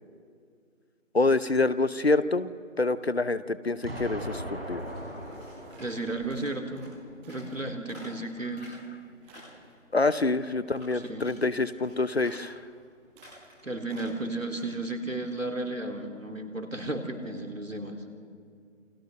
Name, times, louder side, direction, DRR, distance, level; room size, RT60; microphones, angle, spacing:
voice 1, 1.1-2.5 2.8-4.4 4.7-4.8 9.9-12.6, left 3 dB, 50° left, 15 dB, 0.8 m, -26 dB
Explosion, 3.8-6.8, equal, 50° right, 5.3 m, -39 dB
sound 1, 4.5-14.7, equal, 5° right, 5.8 m, -53 dB
voice 2, 5.7-6.9 7.3-8.7 10.9-11.3 13.6-18.0, right 2 dB, 75° right, 4 dB, 3.0 m, -34 dB
28.5 x 21.5 x 6.7 m, 2.3 s
figure-of-eight pair, 165°, 40 cm